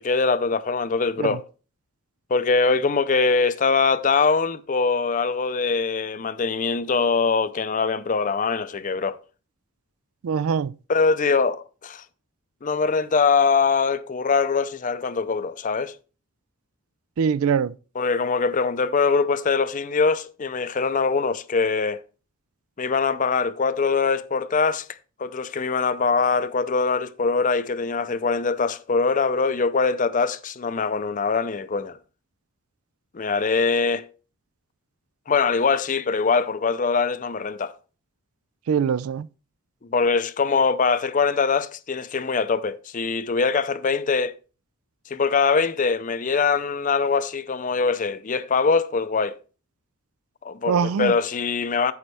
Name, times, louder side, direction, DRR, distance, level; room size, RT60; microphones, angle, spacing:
voice 1, 0.0-1.4 2.3-9.2 10.9-12.0 12.6-15.9 18.0-22.0 22.8-24.9 25.2-32.0 33.1-34.1 35.3-37.7 39.8-44.3 45.1-49.4 50.4-51.9, left 4 dB, 35° left, 0.5 m, -22 dB
voice 2, 10.2-10.8 17.2-17.7 38.7-39.3 50.7-51.1, right 6 dB, 75° right, 0.4 m, -23 dB
9.4 x 7.2 x 3.4 m
head